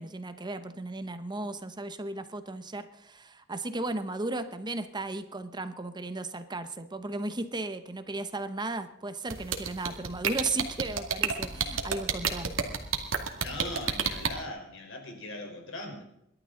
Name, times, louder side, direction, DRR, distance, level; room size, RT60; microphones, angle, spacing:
voice 1, 0.0-12.5, right 2 dB, 20° right, 10 dB, 0.9 m, -35 dB
sound 1, 9.3-14.3, right 6 dB, 80° right, 2.2 m, -28 dB
voice 2, 13.3-16.0, left 1 dB, 65° left, 3 dB, 4.2 m, -40 dB
28.5 x 12.0 x 3.9 m, 0.80 s
head